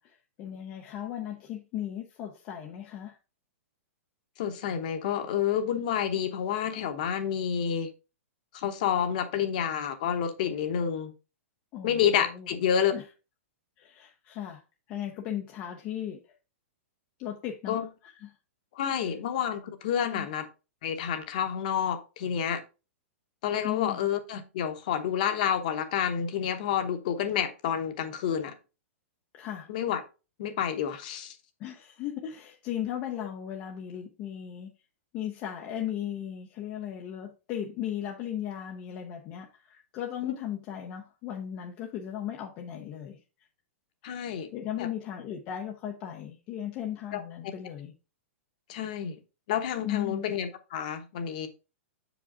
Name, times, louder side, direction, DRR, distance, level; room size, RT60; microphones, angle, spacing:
voice 1, 0.0-3.2 11.7-12.5 12.9-13.0 13.8-14.6 14.9-16.2 17.2-18.3 20.1-20.3 23.6-24.1 29.3-29.7 31.6-34.7 35.1-43.2 44.0-44.2 44.5-47.9 49.8-50.4, left 10 dB, 20° left, 0.5 m, -36 dB
voice 2, 4.4-7.9 8.5-11.1 11.8-12.9 17.7-17.9 18.7-20.5 20.8-22.6 23.4-28.5 29.7-30.0 30.4-31.3 40.3-40.4 44.0-44.5 44.8-44.9 47.1-47.2 48.7-49.2 49.5-51.5, left 8 dB, 35° left, 0.9 m, -29 dB
7.0 x 5.0 x 3.6 m
hypercardioid pair, 180°, 7 cm